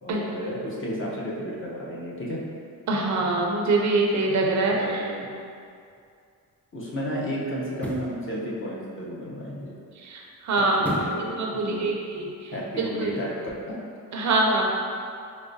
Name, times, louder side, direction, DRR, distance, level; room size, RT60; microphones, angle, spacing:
voice 1, 0.0-2.4 4.7-5.3 6.7-9.7 10.6-11.9 12.5-13.3 13.7-13.8, equal, 40° left, -5 dB, 0.8 m, -33 dB
voice 2, 2.9-5.0 10.0-11.0 11.4-13.1 14.1-14.6, right 2 dB, 55° right, -1 dB, 0.5 m, -24 dB
sound 1, 5.8-6.0 7.7-8.2 10.8-11.3 11.7-11.8, equal, 5° left, 0.3 m, -32 dB
4.6 x 2.2 x 2.6 m, 2.4 s
cardioid pair, 90°, 33 cm